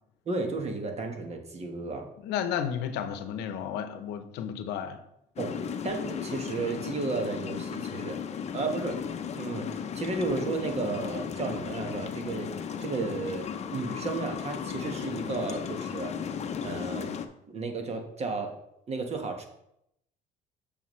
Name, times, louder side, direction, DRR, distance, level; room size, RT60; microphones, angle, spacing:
voice 1, 0.3-2.1 5.4-8.2 8.5-9.0 9.3-12.5 12.8-16.1 16.6-17.1 17.5-18.5 18.9-19.5, right 3 dB, 40° right, 1.3 m, -33 dB
voice 2, 2.2-5.0, left 8 dB, 90° left, 0.7 m, -32 dB
sound 1, 5.4-17.3, left 7 dB, 40° left, 0.6 m, -35 dB
7.2 x 6.9 x 3.1 m
cardioid pair, 110°, 17 cm